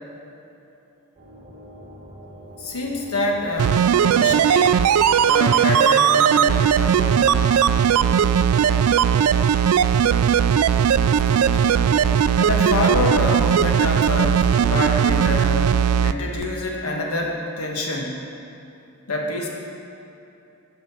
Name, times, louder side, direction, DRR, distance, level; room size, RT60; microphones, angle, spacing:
sound 1, 1.1-7.1, equal, 35° right, 1.5 m, -43 dB
voice 1, 2.6-4.8 5.2-7.4 11.0-11.9 12.4-15.7 16.0-18.2 19.1-19.5, left 2 dB, 80° left, 0 dB, 1.4 m, -26 dB
sound 2, 3.6-16.1 16.4-16.5, right 8 dB, 80° right, 0.3 m, -18 dB
sound 3, 3.9-4.9 7.5-8.4, left 3 dB, 55° left, 0.6 m, -37 dB
11.0 x 5.5 x 6.2 m, 2.9 s
head